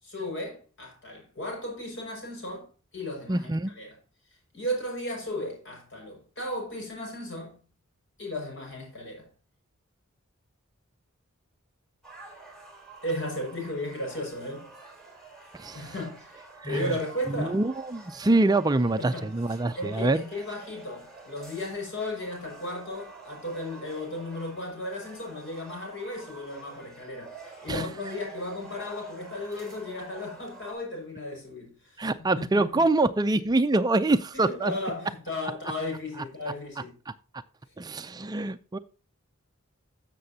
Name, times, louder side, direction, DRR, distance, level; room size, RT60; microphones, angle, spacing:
voice 1, 0.0-2.7 2.9-3.9 4.5-7.6 8.2-9.3 12.2-12.4 13.0-14.7 15.4-17.6 19.0-19.3 19.8-32.9 34.3-36.9, left 1 dB, 60° left, 6.0 m, -35 dB
voice 2, 3.3-3.7 15.5-15.9 16.6-17.0 17.3-20.2 27.7-27.9 32.0-34.8 37.8-38.8, right 2 dB, 20° right, 0.4 m, -25 dB
sound 1, 12.0-30.7, right 3 dB, 5° left, 3.6 m, -48 dB
14.0 x 6.8 x 2.8 m
head